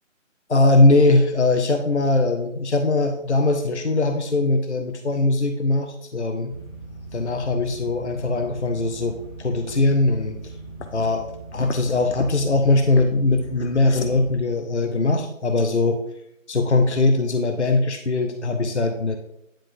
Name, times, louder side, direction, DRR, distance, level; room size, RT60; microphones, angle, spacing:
voice 1, 0.5-6.5 7.1-10.4 10.9-11.2 11.5-16.0 16.5-19.2, left 2 dB, 60° left, 5 dB, 0.6 m, -20 dB
sound 1, 6.5-14.4, right 2 dB, 25° left, 1.3 m, -39 dB
9.9 x 3.7 x 2.6 m, 0.80 s
figure-of-eight pair, 165°, 40 cm